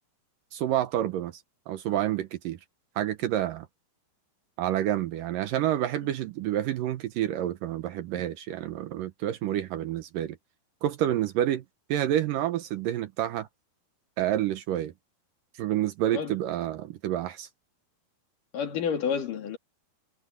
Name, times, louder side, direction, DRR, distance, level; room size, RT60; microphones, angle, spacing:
voice 1, 0.5-2.6 3.0-3.7 4.6-10.4 10.8-11.6 11.9-13.5 14.2-14.9 15.6-17.5, right 12 dB, 75° right, 2.3 m, -28 dB
voice 2, 18.5-19.6, left 7 dB, 60° left, 3.8 m, -30 dB
omnidirectional pair, 4.4 m